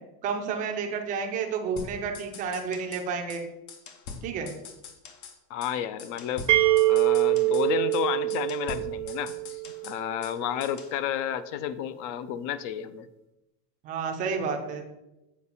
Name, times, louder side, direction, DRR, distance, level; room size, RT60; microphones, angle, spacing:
voice 1, 0.2-3.4 4.2-4.5 13.8-14.8, right 5 dB, 20° right, 3 dB, 0.4 m, -30 dB
sound 1, 1.8-3.0 3.3-3.4 3.7-5.4 5.6-5.7 6.0-7.7 7.9-8.0 8.3-10.4 10.6-11.0, left 5 dB, 65° left, 1.1 m, -43 dB
voice 2, 5.5-6.5 6.9-13.1, left 10 dB, 50° left, 15 dB, 0.4 m, -31 dB
sound 2, 6.5-10.2, right 17 dB, 90° right, 0.9 m, -24 dB
7.2 x 4.7 x 4.1 m, 0.95 s
supercardioid pair, 155°, 49 cm